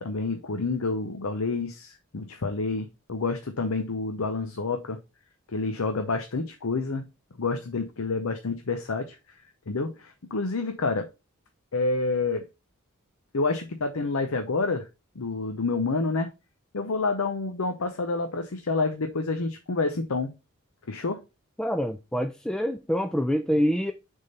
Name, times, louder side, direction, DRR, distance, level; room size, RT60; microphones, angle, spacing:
voice 1, 0.0-5.0 5.5-7.1 7.4-9.2 9.7-11.1 11.7-12.4 13.3-14.9 15.2-16.3 16.7-20.3 20.9-21.2, left 3 dB, 80° left, 0.7 m, -28 dB
voice 2, 21.6-23.9, equal, 5° left, 0.3 m, -26 dB
6.6 x 3.7 x 4.1 m
head